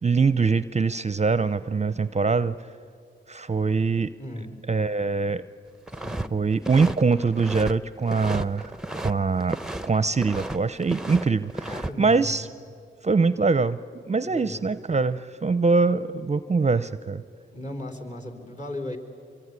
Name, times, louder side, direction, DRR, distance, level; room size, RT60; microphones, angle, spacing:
voice 1, 0.0-2.6 3.3-4.1 4.7-5.4 6.3-9.6 9.8-12.5 13.0-17.2, right 4 dB, 35° right, 15 dB, 0.6 m, -23 dB
voice 2, 4.2-4.5 5.9-6.2 11.7-12.4 14.3-14.7 17.5-19.0, left 1 dB, 35° left, 2 dB, 4.1 m, -36 dB
sound 1, 5.9-6.3 6.5-7.7 8.1-9.1 9.4-10.6 10.8-11.9, right 1 dB, 5° right, 0.8 m, -33 dB
24.5 x 23.5 x 9.6 m, 2.3 s
cardioid pair, 60°, 21 cm